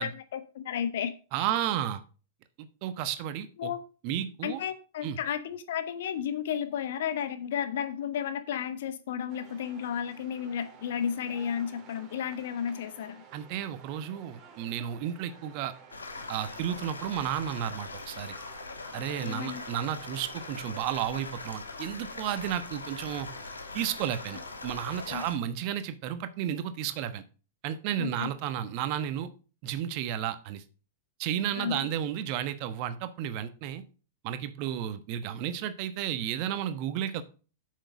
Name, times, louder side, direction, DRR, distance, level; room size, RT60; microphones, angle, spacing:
voice 1, 0.0-1.1 3.6-3.8 4.4-13.2 19.2-19.6 25.1-25.2 28.0-28.3 31.6-31.9, left 8 dB, 60° left, 11 dB, 1.1 m, -33 dB
voice 2, 1.3-2.0 2.6-3.7 4.0-4.6 5.0-5.2 13.3-15.7 16.3-18.4 18.9-23.3 23.7-27.2 27.6-29.3 29.6-30.6 31.2-33.8 34.2-37.2, right 10 dB, 45° right, 12 dB, 1.1 m, -32 dB
sound 1, 9.3-25.2, right 6 dB, 25° right, 2.7 m, -53 dB
sound 2, 15.9-25.3, left 3 dB, 80° left, 1.4 m, -42 dB
7.8 x 6.6 x 5.3 m, 0.36 s
figure-of-eight pair, 100°, 0 cm